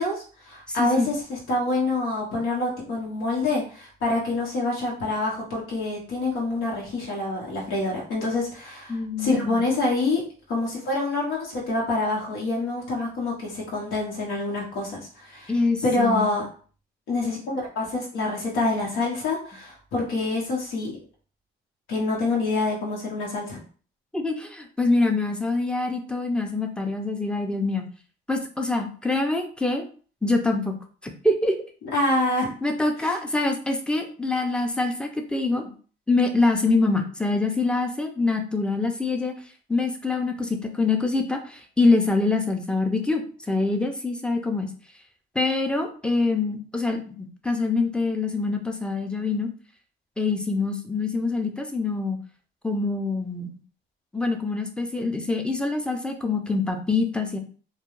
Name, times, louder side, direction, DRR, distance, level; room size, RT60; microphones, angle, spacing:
voice 1, 0.0-15.5 15.8-16.4 17.1-20.9 21.9-23.6 31.8-32.5 33.0-33.1, left 2 dB, 85° left, -3 dB, 0.9 m, -26 dB
voice 2, 0.7-1.1 8.9-9.6 15.5-16.3 24.1-27.9 28.3-29.8 30.2-30.8 31.0-31.6 32.6-35.7 36.1-39.3 39.7-44.7 45.3-49.5 50.2-52.2 52.6-53.6 54.1-57.4, left 3 dB, 5° left, 4 dB, 0.5 m, -25 dB
2.3 x 2.2 x 3.0 m, 0.41 s
cardioid pair, 90°, 20 cm